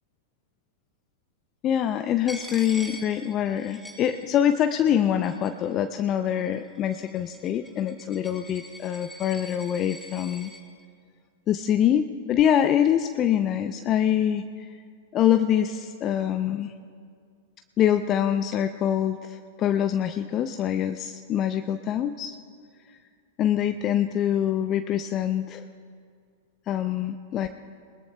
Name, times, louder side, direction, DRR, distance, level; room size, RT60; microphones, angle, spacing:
voice 1, 1.6-10.5 11.5-14.4 15.1-16.7 17.8-22.4 23.4-25.6 26.7-27.5, left 10 dB, 35° left, 9 dB, 0.5 m, -24 dB
Coin (dropping), 2.3-4.6 4.9-5.7 6.4-10.6, equal, ahead, 4.7 m, -44 dB
21.0 x 20.5 x 2.3 m, 2.2 s
figure-of-eight pair, 95°, 0 cm